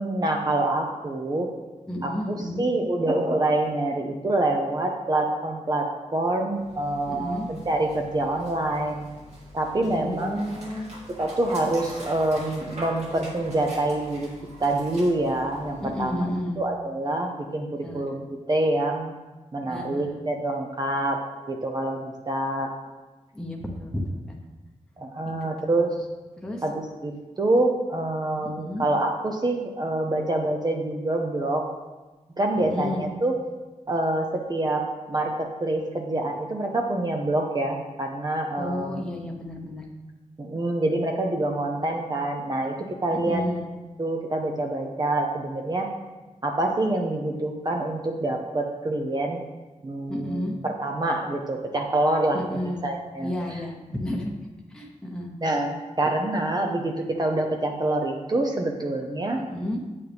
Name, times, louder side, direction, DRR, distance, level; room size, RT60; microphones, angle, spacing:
voice 1, 0.0-1.5 2.0-9.1 9.5-10.4 11.2-14.3 14.6-16.3 16.6-18.2 18.5-19.1 19.5-22.7 25.0-26.0 26.6-31.7 32.4-33.4 33.9-38.9 40.4-43.4 44.0-45.9 46.4-49.4 49.8-53.6 55.4-59.4, right 2 dB, 30° right, 2 dB, 0.7 m, -26 dB
voice 2, 1.9-2.6 7.1-7.5 9.8-11.0 15.8-16.6 17.8-18.0 19.7-20.1 23.3-24.2 25.2-26.0 26.4-26.6 28.4-28.9 32.6-33.1 38.6-39.9 43.2-43.6 50.1-50.6 52.3-52.8 53.2-54.3 54.7-55.3 59.4-59.8, left 1 dB, 5° left, -1 dB, 0.9 m, -32 dB
Dog, 6.5-16.4, equal, 60° right, 2.2 m, -43 dB
8.4 x 8.1 x 3.5 m, 1.2 s
wide cardioid pair, 145°, 13 cm